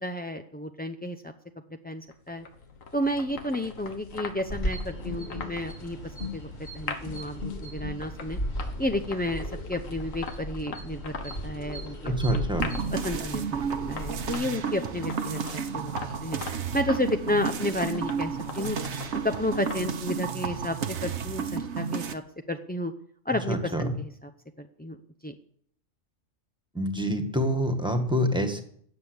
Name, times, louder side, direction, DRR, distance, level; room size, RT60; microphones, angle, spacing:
voice 1, 0.0-1.3 1.8-2.4 2.9-8.4 8.8-12.4 12.9-13.6 13.9-15.9 16.2-16.4 16.7-18.8 19.2-22.2 22.5-22.9 23.2-24.3 24.6-25.0 25.2-25.3, left 1 dB, 15° left, 5 dB, 0.4 m, -31 dB
sound 1, 2.1-21.1, left 5 dB, 90° left, 1.7 m, -42 dB
sound 2, 4.5-14.3, equal, 55° left, 2.9 m, -36 dB
voice 2, 12.0-12.7 23.5-23.9 26.7-28.6, equal, 5° right, 6 dB, 1.6 m, -26 dB
sound 3, 12.6-22.1, right 6 dB, 60° right, 1.2 m, -32 dB
17.0 x 7.5 x 8.0 m, 0.65 s
omnidirectional pair, 1.4 m